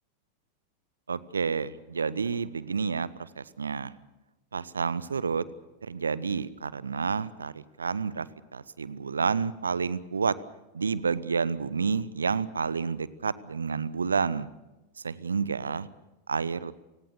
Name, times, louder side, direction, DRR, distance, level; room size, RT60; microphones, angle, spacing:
voice 1, 1.1-3.9 4.5-5.5 5.8-10.4 10.7-14.5 15.0-15.9 16.3-16.7, right 5 dB, 75° right, 19 dB, 0.9 m, -30 dB
28.5 x 18.0 x 6.8 m, 1.1 s
figure-of-eight pair, 90°, 0 cm